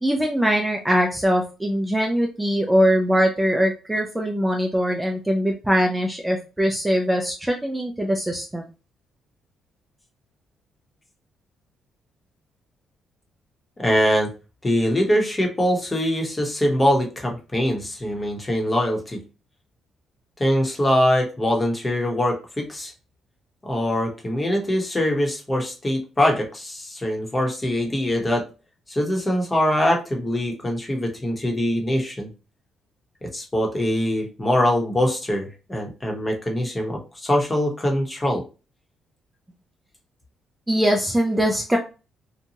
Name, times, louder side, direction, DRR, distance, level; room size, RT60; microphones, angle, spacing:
voice 1, 0.0-8.6 40.7-41.8, equal, 10° right, 2 dB, 0.4 m, -22 dB
voice 2, 13.8-14.3 14.6-19.2 20.4-22.9 23.6-28.5 28.9-32.3 33.2-38.4, left 1 dB, 20° left, 1 dB, 0.9 m, -23 dB
2.8 x 2.2 x 2.7 m, 0.32 s
cardioid pair, 90°, 0 cm